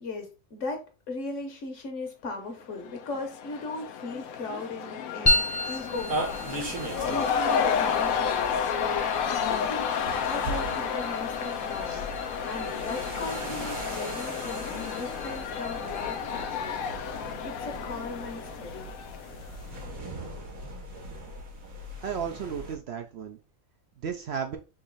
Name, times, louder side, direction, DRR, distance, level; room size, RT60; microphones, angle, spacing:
voice 1, 0.0-6.3 7.1-8.4 8.8-9.1 9.5-9.9 10.2-11.9 12.4-18.9, left 2 dB, 65° left, 4 dB, 1.3 m, -38 dB
Cheering / Crowd, 2.7-19.6, left 7 dB, 85° left, 1.1 m, -31 dB
sound 1, 5.3-19.9, left 1 dB, 25° left, 0.5 m, -36 dB
sound 2, 6.0-22.8, right 2 dB, 80° right, 1.8 m, -39 dB
voice 2, 22.0-23.4 24.0-24.6, right 7 dB, 65° right, 5 dB, 0.7 m, -34 dB
3.9 x 3.0 x 3.8 m, 0.32 s
omnidirectional pair, 1.4 m